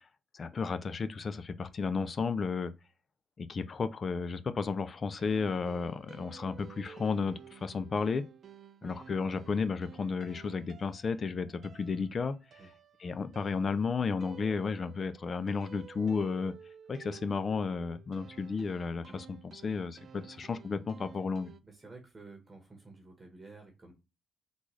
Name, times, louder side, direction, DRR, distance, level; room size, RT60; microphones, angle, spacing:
voice 1, 0.3-2.7 3.4-8.3 8.8-12.4 13.0-16.5 16.9-21.5, left 5 dB, 40° left, 0.4 m, -33 dB
sound 1, 5.2-21.6, right 7 dB, 55° right, 0.3 m, -53 dB
voice 2, 21.6-23.9, right 3 dB, 25° right, 1.1 m, -51 dB
3.7 x 2.4 x 3.1 m
cardioid pair, 90°, 0 cm